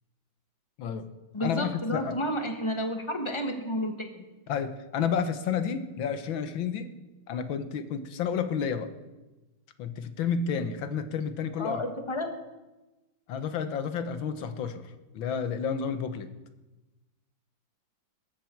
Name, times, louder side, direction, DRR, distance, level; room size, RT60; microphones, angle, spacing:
voice 1, 0.8-1.1 1.4-2.2 4.5-6.9 7.3-8.9 9.8-11.8 13.3-16.3, left 7 dB, 80° left, 10 dB, 1.8 m, -31 dB
voice 2, 1.3-4.2 11.6-12.3, equal, 15° left, 5 dB, 1.5 m, -31 dB
19.0 x 14.5 x 4.6 m, 1.1 s
omnidirectional pair, 2.1 m